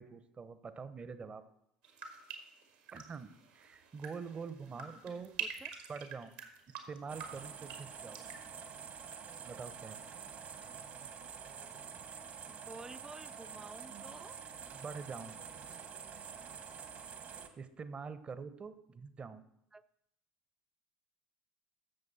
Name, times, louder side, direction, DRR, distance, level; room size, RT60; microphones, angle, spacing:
voice 1, 0.0-1.4 2.9-5.4 5.9-6.3 6.7-8.2 9.5-10.0 14.7-15.4 17.3-19.4, right 5 dB, 30° right, 13 dB, 0.9 m, -45 dB
sound 1, 1.8-9.8 10.0-10.6, right 7 dB, 70° right, 1.8 m, -48 dB
voice 2, 4.7-5.0 5.4-5.7 12.5-14.4 19.7-19.8, right 3 dB, 15° right, 13 dB, 0.5 m, -51 dB
sound 2, 7.1-17.5, right 6 dB, 45° right, 1.3 m, -48 dB
14.5 x 6.6 x 4.2 m, 0.78 s
figure-of-eight pair, 65°, 4 cm